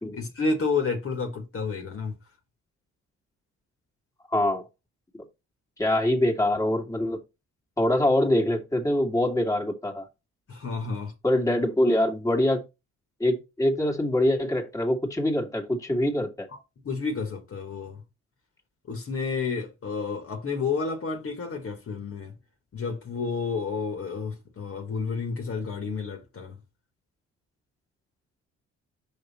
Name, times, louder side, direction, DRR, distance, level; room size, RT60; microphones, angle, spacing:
voice 1, 0.1-2.1 10.5-11.1 16.5-16.6 16.9-18.0 18.9-22.3 22.7-26.5, left 4 dB, 45° left, 1.8 m, -30 dB
voice 2, 4.3-4.6 5.8-7.2 7.8-10.1 11.2-12.6 13.2-16.5, left 1 dB, 10° left, 1.9 m, -24 dB
5.6 x 5.2 x 4.2 m
cardioid pair, 90°, 30 cm